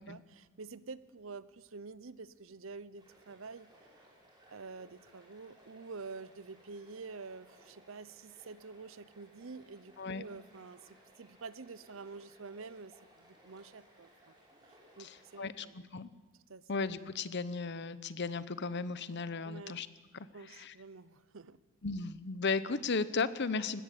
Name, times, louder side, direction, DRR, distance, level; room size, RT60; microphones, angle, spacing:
voice 1, 0.0-3.7 4.5-14.4 15.0-15.9 16.5-16.7 19.4-19.8 20.3-21.6, right 4 dB, 70° right, 17 dB, 0.7 m, -48 dB
sound 1, 3.0-15.5, right 1 dB, 20° right, 5.7 m, -62 dB
voice 2, 15.0-16.1 16.7-19.9 20.1-20.7 21.8-23.8, left 4 dB, 55° left, 15 dB, 0.9 m, -35 dB
20.0 x 16.0 x 8.5 m, 1.3 s
head